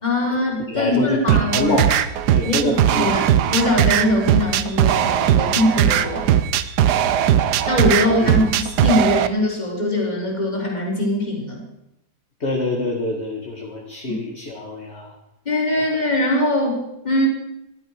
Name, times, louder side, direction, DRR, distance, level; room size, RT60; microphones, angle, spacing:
voice 1, 0.0-1.8 2.4-3.2 3.5-6.3 7.7-11.6 14.1-14.2 15.5-17.3, left 1 dB, 25° left, -1 dB, 4.1 m, -21 dB
voice 2, 0.7-1.9 2.3-3.2 7.2-7.4 8.2-8.3 12.4-15.1, left 1 dB, 40° left, 0 dB, 2.2 m, -25 dB
sound 1, 1.3-9.3, right 10 dB, 80° right, 1.3 m, -19 dB
14.5 x 12.0 x 6.6 m, 0.87 s
omnidirectional pair, 1.8 m